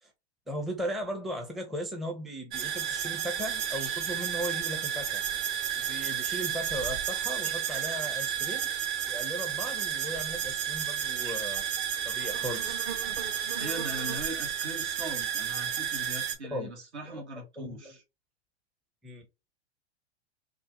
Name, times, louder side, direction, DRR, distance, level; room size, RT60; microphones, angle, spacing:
voice 1, 0.5-5.2 5.7-8.7 9.1-11.6 12.0-12.8 16.5-16.7 17.1-17.2 17.6-17.9 19.0-19.3, equal, ahead, 0.5 m, -37 dB
sound 1, 2.5-16.3, right 9 dB, 45° right, 1.0 m, -32 dB
voice 2, 13.6-18.0, right 1 dB, 75° right, 1.8 m, -40 dB
3.5 x 2.4 x 2.8 m
hypercardioid pair, 105°, 34 cm